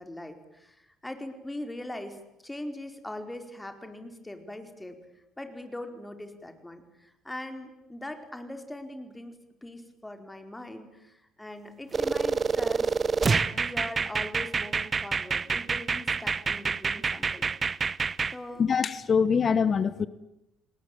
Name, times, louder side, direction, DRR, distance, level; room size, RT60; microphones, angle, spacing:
voice 1, 0.0-2.2 2.4-5.0 5.4-9.3 9.6-12.9 13.2-17.5 18.3-18.7, left 1 dB, 10° left, 6 dB, 4.7 m, -41 dB
sound 1, 11.9-18.3, right 5 dB, 35° right, 0.9 m, -27 dB
voice 2, 18.6-20.1, left 6 dB, 40° left, 16 dB, 1.3 m, -24 dB
30.0 x 19.5 x 9.0 m, 0.88 s
hypercardioid pair, 55°, 0 cm